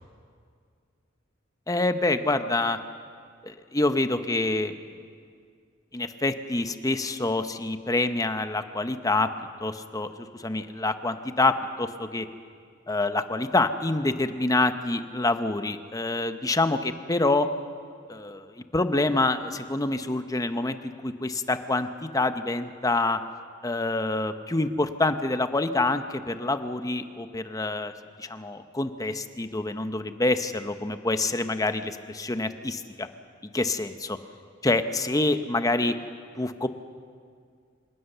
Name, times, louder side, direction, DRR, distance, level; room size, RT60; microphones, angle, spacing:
voice 1, 1.7-2.8 3.4-4.7 5.9-9.3 9.6-12.3 12.9-17.5 18.1-23.2 23.6-27.9 28.2-33.1 33.5-34.2 34.6-35.9 36.4-36.7, left 2 dB, 20° left, 9 dB, 0.9 m, -26 dB
26.0 x 18.0 x 6.8 m, 2.2 s
head